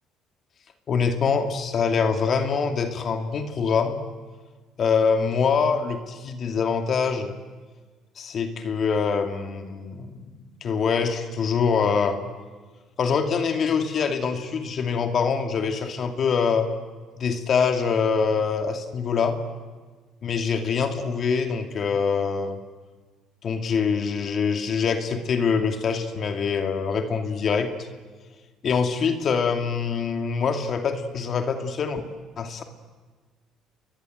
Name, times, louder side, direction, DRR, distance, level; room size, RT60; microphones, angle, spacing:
voice 1, 0.9-4.1 4.8-7.4 8.2-10.3 10.6-12.2 13.0-16.7 17.2-19.4 20.2-22.6 23.4-27.7 28.6-32.0 32.4-32.6, left 5 dB, 50° left, 6 dB, 2.6 m, -24 dB
29.5 x 22.0 x 8.0 m, 1.4 s
hypercardioid pair, 65°, 0 cm